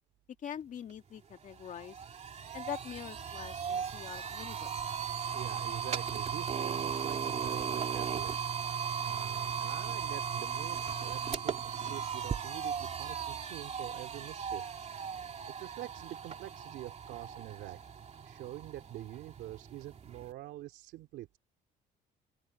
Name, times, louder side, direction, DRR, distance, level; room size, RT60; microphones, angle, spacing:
voice 1, 0.4-2.0 2.5-4.7, left 9 dB, 50° left, 2.1 m, -43 dB
sound 1, 0.9-1.0 1.3-20.3, right 7 dB, 40° right, 2.8 m, -37 dB
voice 2, 5.2-8.6 9.0-15.0 15.6-21.4, right 15 dB, 80° right, 3.0 m, -46 dB
open air
cardioid pair, 110°, 17 cm